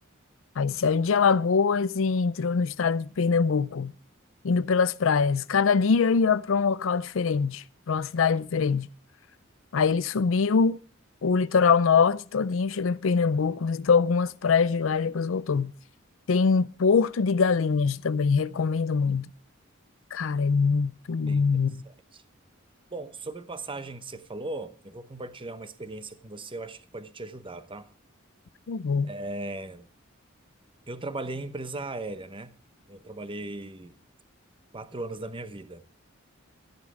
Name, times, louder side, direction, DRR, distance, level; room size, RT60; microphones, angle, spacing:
voice 1, 0.6-3.9 4.4-8.9 9.7-10.8 11.2-15.7 16.3-19.3 20.1-21.8 28.7-29.1, left 5 dB, 70° left, 0.5 m, -23 dB
voice 2, 21.9-22.2 22.9-27.9 29.0-29.9 30.9-32.5 32.9-33.9 34.7-35.8, right 2 dB, 25° right, 0.9 m, -38 dB
12.0 x 10.5 x 4.8 m
head